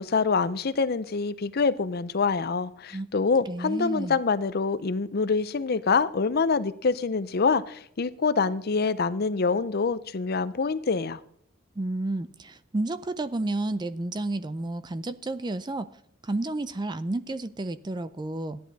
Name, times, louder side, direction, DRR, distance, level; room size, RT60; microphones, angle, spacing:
voice 1, 0.0-11.2, left 4 dB, 45° left, 0.5 m, -25 dB
voice 2, 3.5-4.2 11.8-15.9 16.2-18.6, right 2 dB, 20° right, 0.4 m, -31 dB
14.5 x 10.5 x 4.1 m
head